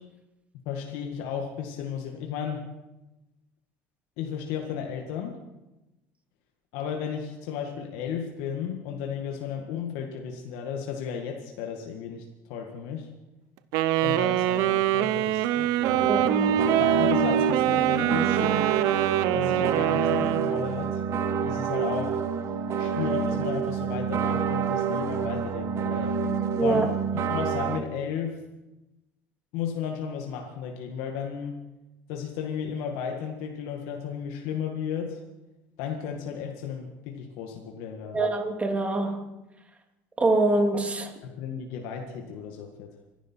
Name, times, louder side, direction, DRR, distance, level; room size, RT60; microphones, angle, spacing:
voice 1, 0.7-2.6 4.2-5.4 6.7-13.1 14.0-18.7 19.3-21.0 21.4-22.2 22.8-26.2 26.6-28.4 29.5-31.6 32.1-35.2 35.8-38.3 41.2-42.9, left 7 dB, 80° left, 1.9 m, -34 dB
Wind instrument woodwind instrument, 13.7-20.7, right 12 dB, 75° right, 0.8 m, -24 dB
sound 1, 15.8-27.8, right 6 dB, 50° right, 1.2 m, -28 dB
voice 2, 16.1-16.6 26.6-26.9 38.1-39.3 40.2-41.1, right 2 dB, 20° right, 2.8 m, -24 dB
26.0 x 11.5 x 4.6 m
supercardioid pair, 90°, 6 cm